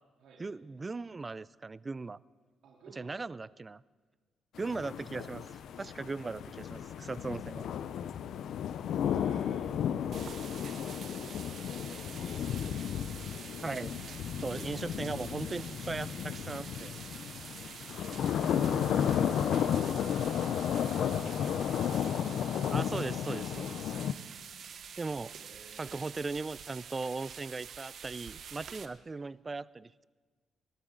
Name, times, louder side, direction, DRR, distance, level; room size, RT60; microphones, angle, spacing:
voice 1, 0.4-2.2 3.0-3.8 4.6-7.7 13.6-13.9 14.4-17.0 22.7-23.9 25.0-25.3 25.8-30.1, right 3 dB, 25° right, 20 dB, 0.4 m, -38 dB
voice 2, 2.6-3.1 9.0-9.7 10.1-12.4 14.6-15.0 25.3-26.0, right 4 dB, 80° right, -3 dB, 3.5 m, -57 dB
sound 1, 4.6-24.1, left 9 dB, 70° left, 0.6 m, -33 dB
sound 2, 10.1-28.9, right 7 dB, 60° right, 1.0 m, -47 dB
26.5 x 12.5 x 3.9 m, 1.4 s
cardioid pair, 90°, 0 cm